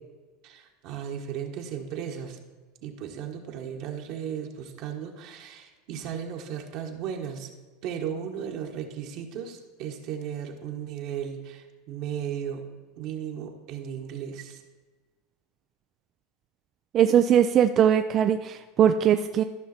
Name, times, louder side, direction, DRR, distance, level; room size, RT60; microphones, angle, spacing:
voice 1, 0.4-2.4 2.8-7.5 7.8-12.7 13.0-14.6, right 8 dB, 60° right, 2 dB, 1.4 m, -35 dB
voice 2, 16.9-19.4, right 9 dB, 40° right, 8 dB, 0.4 m, -20 dB
13.5 x 5.7 x 4.3 m, 1.3 s
hypercardioid pair, 105°, 0 cm